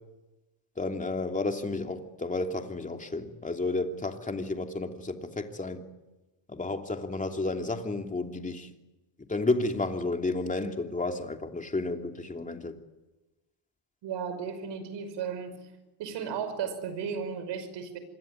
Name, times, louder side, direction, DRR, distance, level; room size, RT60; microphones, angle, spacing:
voice 1, 0.8-5.8 6.5-8.7 9.3-12.7, left 2 dB, 15° left, 5 dB, 2.9 m, -31 dB
voice 2, 14.0-15.6 16.0-18.0, right 7 dB, 60° right, 11 dB, 5.7 m, -34 dB
26.0 x 21.5 x 9.6 m, 1.1 s
cardioid pair, 105°, 48 cm